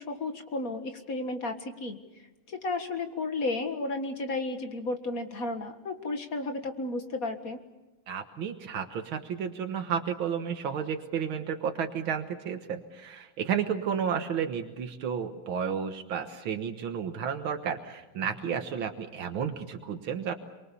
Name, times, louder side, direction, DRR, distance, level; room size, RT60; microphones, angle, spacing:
voice 1, 0.0-2.0 2.5-7.6, left 2 dB, 45° left, 6 dB, 2.1 m, -33 dB
voice 2, 8.1-20.3, right 7 dB, 85° right, 6 dB, 2.1 m, -32 dB
27.5 x 24.0 x 6.9 m, 1.0 s
omnidirectional pair, 2.1 m